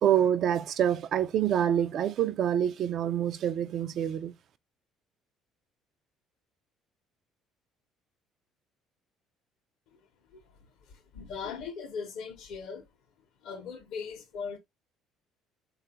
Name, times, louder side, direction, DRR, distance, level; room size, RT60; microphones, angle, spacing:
voice 1, 0.0-4.3, right 10 dB, 60° right, 0.3 m, -26 dB
voice 2, 10.3-12.9 13.4-14.6, left 6 dB, 70° left, 0.7 m, -40 dB
3.3 x 2.3 x 2.8 m
supercardioid pair, 70°, 0 cm